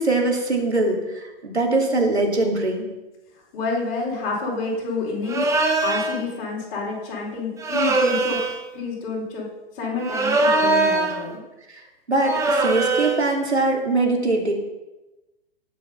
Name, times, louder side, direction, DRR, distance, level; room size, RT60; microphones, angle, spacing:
voice 1, 0.0-2.9 12.1-14.5, right 2 dB, 85° right, 1 dB, 2.8 m, -22 dB
voice 2, 3.5-9.5 9.8-11.4, left 3 dB, 35° left, -4 dB, 4.5 m, -28 dB
sound 1, 5.3-6.2 7.6-8.6 10.0-11.2 12.2-13.3, right 3 dB, 10° right, 1.2 m, -21 dB
18.5 x 6.3 x 5.6 m, 1.1 s
figure-of-eight pair, 115°, 32 cm